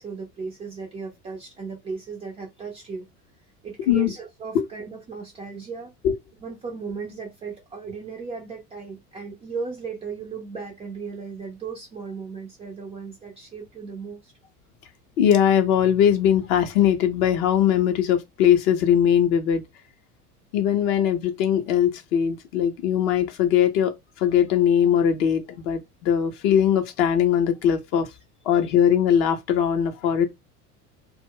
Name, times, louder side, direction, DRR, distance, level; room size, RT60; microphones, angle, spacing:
voice 1, 0.0-3.1 3.6-5.9 6.4-14.3 28.5-28.7, right 5 dB, 15° right, 0.4 m, -36 dB
voice 2, 15.2-19.6 20.5-23.9 24.2-28.1 28.5-30.3, left 9 dB, 40° left, 0.5 m, -20 dB
2.1 x 2.0 x 3.6 m
figure-of-eight pair, 75°, 47 cm